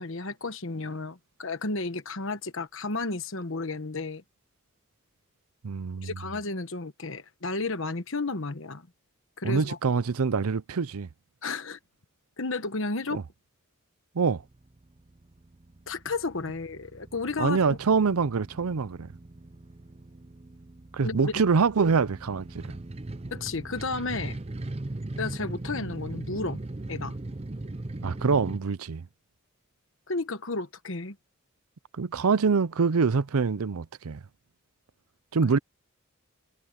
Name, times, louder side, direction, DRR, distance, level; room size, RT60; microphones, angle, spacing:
voice 1, 0.0-4.2 6.0-8.9 9.4-9.8 11.4-11.8 12.4-13.2 15.9-17.8 21.0-21.3 23.3-24.4 25.2-26.6 26.9-27.1 30.1-31.2, left 3 dB, 60° left, 1.3 m, -32 dB
voice 2, 5.6-6.1 9.4-11.1 13.1-13.2 14.1-14.4 17.4-19.1 20.9-22.7 28.0-29.1 32.0-34.2 35.3-35.6, right 5 dB, 85° right, 0.6 m, -25 dB
sound 1, 14.4-28.6, right 2 dB, 30° right, 0.6 m, -39 dB
head